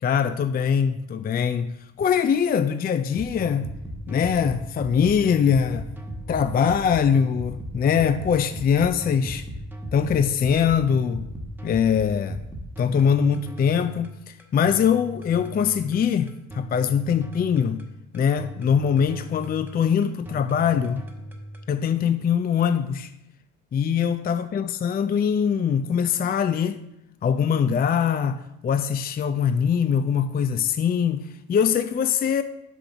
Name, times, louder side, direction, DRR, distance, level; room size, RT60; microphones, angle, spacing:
voice 1, 0.0-3.7 4.1-5.8 6.3-9.5 9.9-11.3 11.6-12.4 12.8-17.9 18.1-21.0 21.7-23.1 23.7-26.8 27.2-32.4, left 7 dB, 30° left, 0.4 m, -22 dB
sound 1, 3.1-21.7, right 1 dB, 5° right, 1.2 m, -38 dB
6.2 x 5.1 x 5.9 m
cardioid pair, 90°, 30 cm